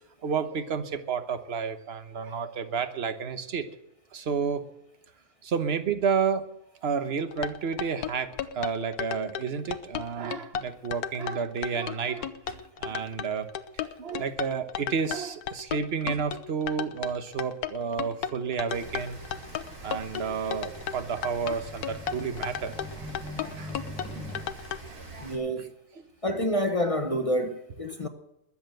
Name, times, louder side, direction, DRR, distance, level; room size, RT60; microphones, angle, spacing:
voice 1, 0.2-3.7 4.1-4.6 5.4-6.5 6.8-13.5 13.7-19.2 19.8-22.7 23.0-23.1 23.4-23.8 24.1-24.2 24.8-25.3, right 6 dB, 45° right, 1.2 m, -31 dB
sound 1, 7.3-24.8, left 9 dB, 80° left, 1.2 m, -34 dB
Rain, 18.7-25.4, right 2 dB, 85° right, 3.7 m, -45 dB
sound 2, 20.4-24.4, left 1 dB, 5° left, 2.2 m, -43 dB
voice 2, 25.2-25.7 26.2-28.1, equal, 25° left, 0.9 m, -28 dB
21.5 x 7.4 x 7.8 m
omnidirectional pair, 1.6 m